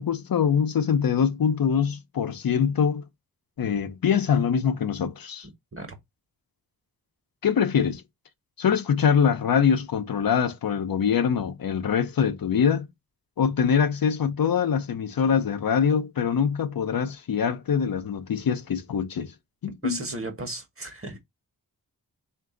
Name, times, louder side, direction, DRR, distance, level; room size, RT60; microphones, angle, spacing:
voice 1, 0.0-3.1 3.6-5.5 7.4-8.0 8.6-12.9 13.4-19.3 19.6-20.0, left 7 dB, 70° left, 0.7 m, -24 dB
voice 2, 19.8-21.2, right 2 dB, 35° right, 1.3 m, -35 dB
3.7 x 2.6 x 3.7 m
wide cardioid pair, 80°, 36 cm